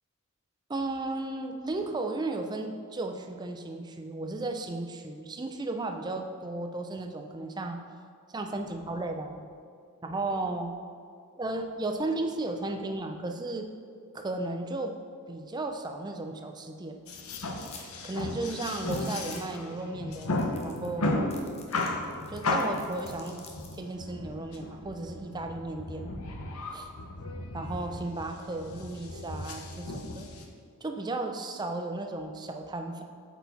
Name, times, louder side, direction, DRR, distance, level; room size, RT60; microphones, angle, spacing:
voice 1, 0.7-7.8 8.3-9.5 10.0-10.7 11.4-13.7 14.1-15.0 15.3-17.0 18.0-21.3 22.3-23.4 23.7-26.1 26.7-26.9 27.5-30.3 30.8-33.0, right 2 dB, 20° right, 5 dB, 0.4 m, -34 dB
sound 1, 17.1-30.4, left 2 dB, 75° left, 0.8 m, -35 dB
sound 2, 17.6-17.9 18.2-18.3 18.8-19.6 20.1-20.2 20.4-20.9 21.3-23.8, left 5 dB, 30° left, 0.7 m, -49 dB
8.0 x 4.5 x 4.1 m, 2.2 s
head